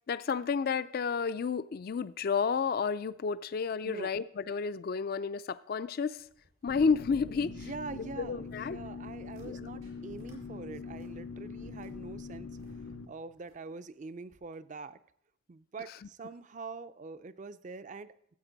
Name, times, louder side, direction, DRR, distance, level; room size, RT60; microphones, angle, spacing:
voice 1, 0.1-6.2 6.6-7.5 8.2-8.8 9.4-9.6, left 5 dB, 45° left, 0.3 m, -31 dB
sound 1, 6.1-8.0 8.2-8.7 9.1-9.5 9.8-10.4 10.7-12.7 13.3-13.9 14.3-14.4, right 1 dB, 90° right, 4.6 m, -63 dB
sound 2, 6.7-13.1, left 4 dB, 80° left, 1.0 m, -43 dB
voice 2, 7.4-12.5 12.9-15.0 15.5-18.1, right 4 dB, 35° right, 0.4 m, -44 dB
14.5 x 8.0 x 3.9 m
head